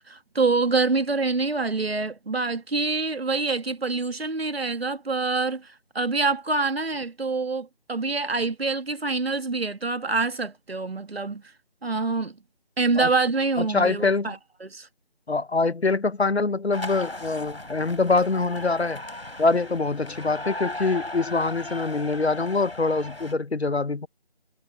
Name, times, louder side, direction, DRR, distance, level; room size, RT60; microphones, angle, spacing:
voice 1, 0.1-5.6 5.9-11.4 11.8-12.3 12.8-14.4 14.6-14.9, right 3 dB, 70° right, 1.4 m, -26 dB
voice 2, 13.6-14.4 15.3-19.0 19.4-24.1, left 3 dB, 90° left, 1.0 m, -24 dB
sound 1, 16.7-23.3, left 1 dB, 75° left, 4.4 m, -37 dB
figure-of-eight pair, 165°, 31 cm